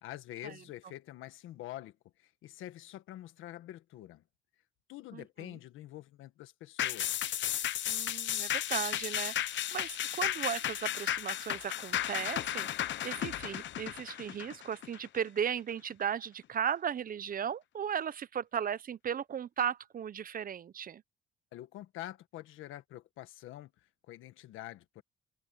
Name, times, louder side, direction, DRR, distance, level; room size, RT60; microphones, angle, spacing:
voice 1, 0.0-1.9 2.2-4.2 4.9-7.3 21.5-25.0, left 14 dB, 90° left, 1.5 m, -46 dB
voice 2, 5.1-5.6 7.9-12.7 13.0-21.0, right 8 dB, 45° right, 0.7 m, -36 dB
sound 1, 6.8-15.5 15.9-16.0, left 12 dB, 70° left, 0.9 m, -34 dB
cardioid pair, 90°, 20 cm